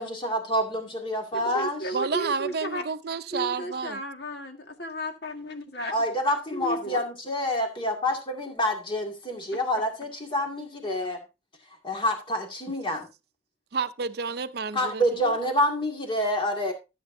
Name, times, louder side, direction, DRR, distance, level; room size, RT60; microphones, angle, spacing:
voice 1, 0.0-1.8 5.9-11.2 11.8-13.1 14.7-16.7, equal, 25° left, 2.1 m, -27 dB
voice 2, 1.3-2.8 3.3-5.9 6.5-7.0 9.5-9.6, equal, 60° left, 1.7 m, -34 dB
voice 3, 1.9-4.0 13.7-15.3, right 5 dB, 55° right, 0.5 m, -30 dB
14.0 x 7.8 x 2.7 m
head